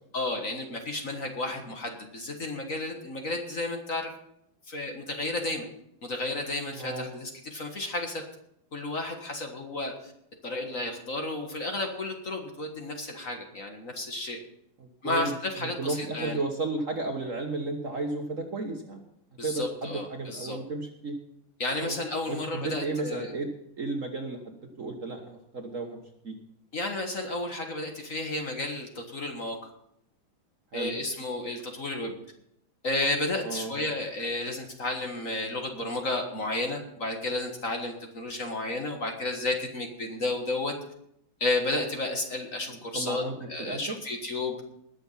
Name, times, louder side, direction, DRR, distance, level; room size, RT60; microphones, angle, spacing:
voice 1, 0.1-4.1 4.7-5.7 6.0-8.2 8.7-10.1 10.4-14.4 15.0-16.4 19.4-20.6 21.6-23.3 26.7-29.7 30.7-32.1 32.8-40.7 41.4-44.6, left 2 dB, 40° left, 3 dB, 1.8 m, -32 dB
voice 2, 6.7-7.1 15.0-15.3 15.6-19.0 19.4-21.2 21.8-21.9 22.3-23.5 23.8-26.3 30.7-30.9 33.4-33.7 42.9-44.0, right 3 dB, 40° right, 3 dB, 1.4 m, -33 dB
20.0 x 7.0 x 5.7 m, 0.74 s
omnidirectional pair, 2.4 m